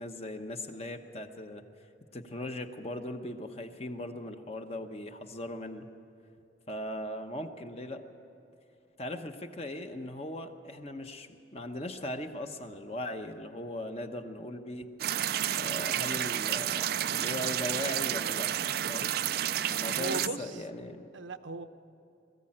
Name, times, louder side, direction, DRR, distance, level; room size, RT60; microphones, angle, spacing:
voice 1, 0.0-1.6 2.1-5.9 6.7-8.0 9.0-14.9 15.5-18.5 18.9-19.1 19.7-21.0, left 1 dB, 30° left, 6 dB, 1.0 m, -39 dB
sound 1, 15.0-20.3, right 10 dB, 50° right, 0.4 m, -31 dB
voice 2, 19.9-20.6 21.1-21.7, right 3 dB, 75° right, 9 dB, 0.8 m, -37 dB
21.5 x 14.5 x 8.7 m, 2.7 s
head